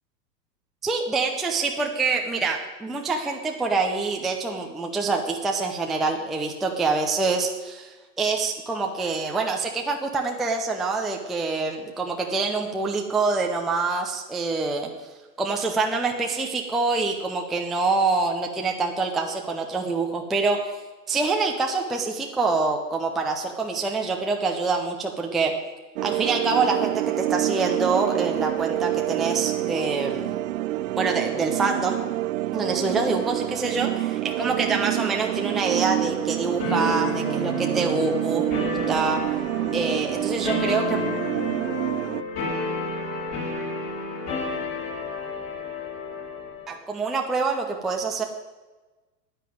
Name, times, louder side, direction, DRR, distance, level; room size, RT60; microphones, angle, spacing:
voice 1, 0.8-14.9 15.4-20.8 21.1-25.5 26.0-30.3 31.0-32.0 32.5-38.4 38.9-39.2 39.7-41.0 46.7-48.2, right 4 dB, ahead, 1 dB, 0.5 m, -26 dB
sound 1, 26.0-42.2, right 15 dB, 50° right, 0.6 m, -27 dB
sound 2, 36.6-46.7, left 3 dB, 40° left, 4.3 m, -31 dB
10.0 x 9.2 x 9.3 m, 1.2 s
hypercardioid pair, 110°, 50 cm